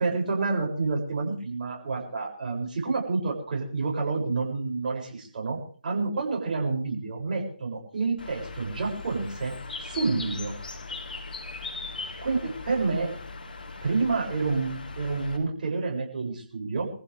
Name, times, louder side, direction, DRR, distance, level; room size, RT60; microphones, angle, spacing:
voice 1, 0.0-9.5 9.8-10.5 12.2-13.1 13.8-16.9, right 3 dB, 50° right, -1 dB, 7.6 m, -29 dB
Bird, 8.2-15.4, left 3 dB, 65° left, 4.6 m, -39 dB
25.0 x 15.0 x 3.7 m, 0.43 s
figure-of-eight pair, 145°, 5 cm